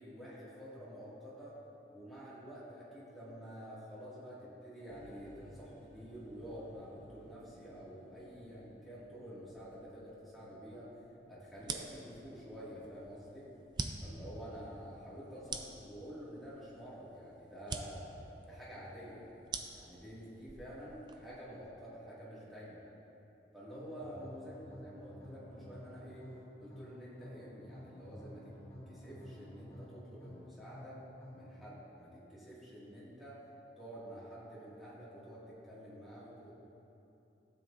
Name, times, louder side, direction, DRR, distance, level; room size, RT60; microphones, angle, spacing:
voice 1, 0.0-1.6 1.9-11.0 11.3-13.5 14.0-18.1 18.5-19.3 19.7-22.8 23.5-26.3 26.6-28.5 28.9-31.0 31.3-33.4 33.8-36.5, equal, ahead, -10 dB, 2.0 m, -49 dB
sound 1, 4.9-18.2, equal, 40° right, 1.8 m, -63 dB
sound 2, 11.6-21.5, right 4 dB, 25° right, 0.4 m, -46 dB
sound 3, 23.7-31.6, equal, 15° left, 1.8 m, -51 dB
12.5 x 7.6 x 2.6 m, 2.9 s
head